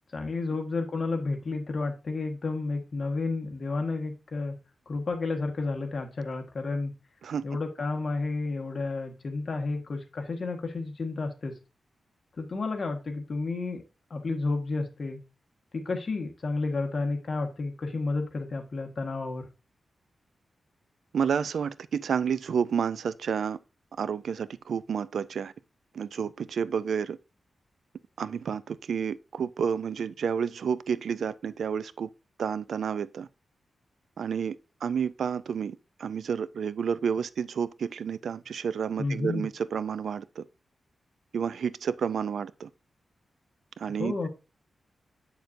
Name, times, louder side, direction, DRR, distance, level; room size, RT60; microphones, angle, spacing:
voice 1, 0.1-4.6 4.9-6.9 7.4-11.5 12.4-13.8 14.1-15.2 15.7-19.5 39.0-39.5 44.0-44.3, left 3 dB, 45° left, 1.4 m, -31 dB
voice 2, 21.1-23.6 24.0-25.5 25.9-27.2 28.2-32.1 32.4-33.3 34.2-40.4 41.3-42.7 43.8-44.3, right 7 dB, 75° right, 0.3 m, -30 dB
8.0 x 6.5 x 2.6 m
wide cardioid pair, 140°, 0 cm